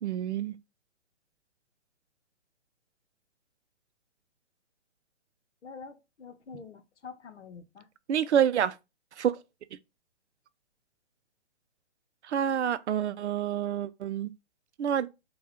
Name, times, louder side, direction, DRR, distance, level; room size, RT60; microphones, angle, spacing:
voice 1, 0.0-0.6 8.1-8.7 9.2-9.4 12.2-14.3 14.8-15.1, right 9 dB, 70° right, 0.5 m, -27 dB
voice 2, 5.6-7.9, left 5 dB, 75° left, 0.8 m, -46 dB
4.6 x 2.3 x 2.9 m
hypercardioid pair, 140°, 35 cm